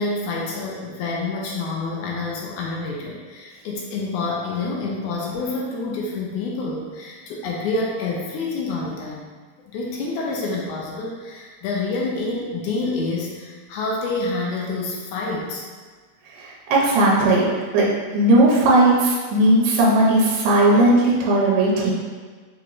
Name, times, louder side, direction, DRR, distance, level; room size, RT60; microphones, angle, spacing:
voice 1, 0.0-9.3 9.7-15.6, left 3 dB, 80° left, -2 dB, 2.0 m, -27 dB
voice 2, 16.4-17.5 17.7-21.9, right 1 dB, 80° right, -4 dB, 2.2 m, -17 dB
5.9 x 2.9 x 2.4 m, 1.5 s
omnidirectional pair, 3.6 m